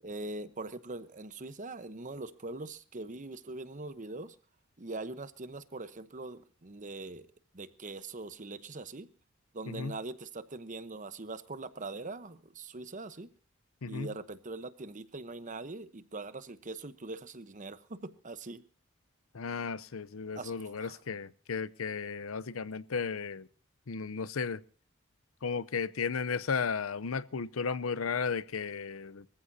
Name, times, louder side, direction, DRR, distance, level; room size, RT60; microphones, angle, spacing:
voice 1, 0.0-4.4 4.8-7.3 7.5-9.1 9.5-13.3 13.9-18.6 20.3-21.0, right 2 dB, 40° right, 0.9 m, -42 dB
voice 2, 19.3-23.5 23.9-24.6 25.4-29.4, left 5 dB, 80° left, 0.7 m, -34 dB
24.0 x 14.5 x 2.7 m
head